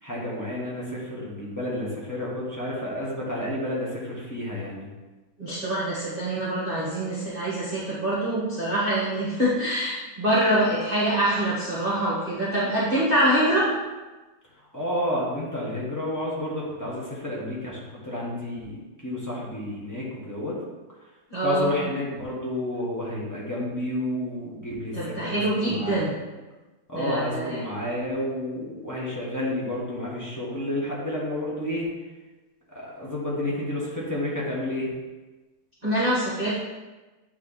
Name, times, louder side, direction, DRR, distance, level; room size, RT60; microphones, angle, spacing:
voice 1, 0.0-4.9 14.7-20.6 21.4-26.0 26.9-31.9 32.7-34.9, left 1 dB, 10° left, -6 dB, 1.1 m, -30 dB
voice 2, 5.4-13.7 21.3-21.7 24.9-26.2 26.9-27.6 35.8-36.6, right 1 dB, 30° right, -9 dB, 1.3 m, -25 dB
8.9 x 3.5 x 4.1 m, 1.2 s
omnidirectional pair, 2.3 m